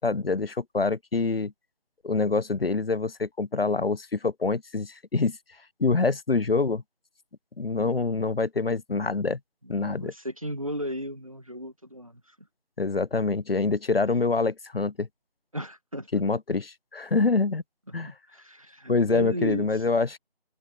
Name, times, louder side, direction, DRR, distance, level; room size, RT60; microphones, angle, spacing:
voice 1, 0.0-1.5 2.0-5.4 5.8-6.8 7.6-9.4 9.7-10.1 12.8-15.1 16.1-16.7 16.9-17.6 17.9-18.1 18.9-20.2, left 4 dB, 70° left, 0.7 m, -25 dB
voice 2, 9.6-12.2 15.5-16.2 17.9-19.7, equal, 35° right, 1.6 m, -35 dB
open air
figure-of-eight pair, 175°, 31 cm